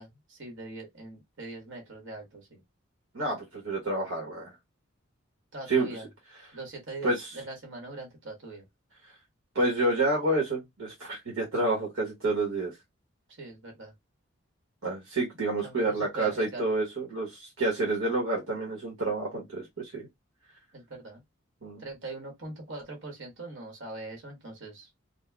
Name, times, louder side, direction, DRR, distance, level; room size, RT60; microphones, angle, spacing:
voice 1, 0.0-2.6 5.5-6.1 6.5-8.6 13.4-13.9 15.6-16.7 20.7-21.2 21.8-24.9, right 2 dB, 60° right, 1.3 m, -42 dB
voice 2, 3.1-4.5 5.7-5.9 7.0-7.3 9.5-12.7 14.8-20.1 21.6-21.8, right 2 dB, 75° right, 1.0 m, -29 dB
4.1 x 2.0 x 2.2 m
head